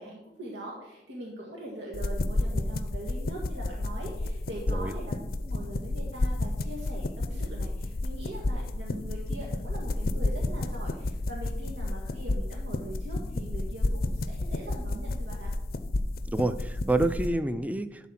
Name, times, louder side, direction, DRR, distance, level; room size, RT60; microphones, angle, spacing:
voice 1, 0.0-15.5, right 1 dB, 90° right, -3 dB, 1.7 m, -42 dB
sound 1, 1.9-17.3, left 2 dB, 50° left, 0.5 m, -31 dB
voice 2, 16.3-18.1, right 2 dB, 10° right, 11 dB, 0.3 m, -28 dB
11.0 x 4.1 x 5.8 m, 0.97 s
head